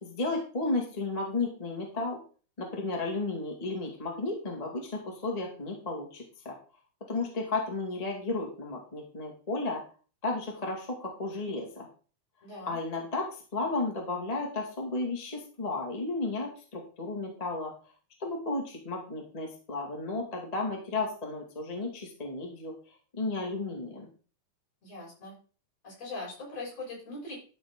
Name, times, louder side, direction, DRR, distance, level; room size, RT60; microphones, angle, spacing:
voice 1, 0.0-2.2 2.6-6.5 7.1-9.8 10.2-11.9 12.7-17.7 18.2-24.1, left 3 dB, 15° left, -1 dB, 1.6 m, -33 dB
voice 2, 12.4-12.8 24.8-25.4 25.8-27.4, left 2 dB, 55° left, -6 dB, 7.6 m, -41 dB
12.0 x 6.8 x 3.7 m, 0.39 s
omnidirectional pair, 3.5 m